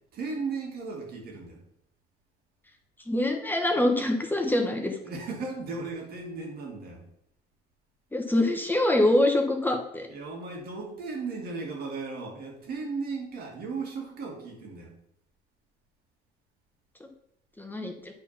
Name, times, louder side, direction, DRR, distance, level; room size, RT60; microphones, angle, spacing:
voice 1, 0.1-1.6 5.0-7.0 10.1-14.9, right 4 dB, 65° right, 0 dB, 2.4 m, -36 dB
voice 2, 3.1-4.9 8.1-10.1 17.6-17.9, left 1 dB, 10° left, 3 dB, 1.0 m, -24 dB
8.2 x 4.2 x 5.8 m, 0.75 s
cardioid pair, 110°, 17 cm